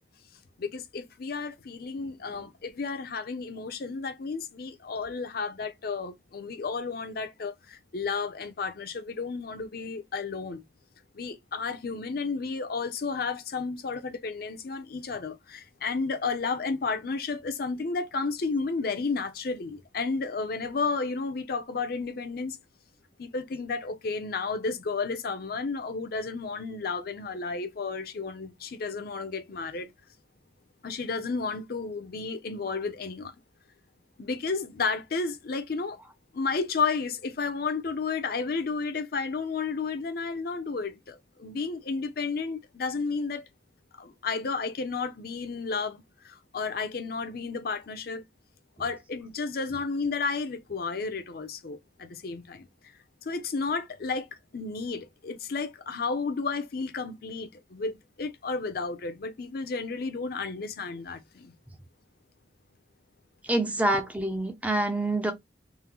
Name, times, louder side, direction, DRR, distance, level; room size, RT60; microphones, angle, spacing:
voice 1, 0.6-10.6 11.1-22.6 23.2-29.9 30.8-33.3 34.2-36.0 36.3-43.5 44.0-48.2 48.8-52.7 53.2-54.3 54.5-61.5, left 4 dB, 55° left, 0.5 m, -32 dB
voice 2, 63.4-65.3, right 1 dB, 10° right, 0.4 m, -26 dB
3.6 x 2.0 x 2.9 m
head